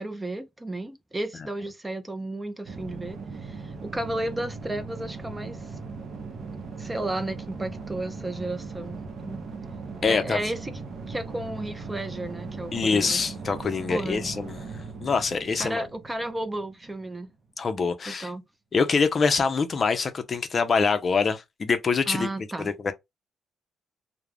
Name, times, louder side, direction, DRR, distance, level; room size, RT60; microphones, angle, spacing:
voice 1, 0.0-5.8 6.8-9.4 10.0-10.7 11.1-13.2 13.9-14.3 15.6-17.3 18.1-18.4 22.1-22.7, right 1 dB, 15° right, 0.4 m, -33 dB
sound 1, 2.6-17.1, right 4 dB, 55° right, 0.6 m, -39 dB
voice 2, 10.0-10.4 12.7-14.7 15.0-15.9 17.6-18.3 18.7-22.3 22.6-22.9, left 5 dB, 40° left, 0.4 m, -25 dB
2.3 x 2.0 x 3.1 m
cardioid pair, 90°, 0 cm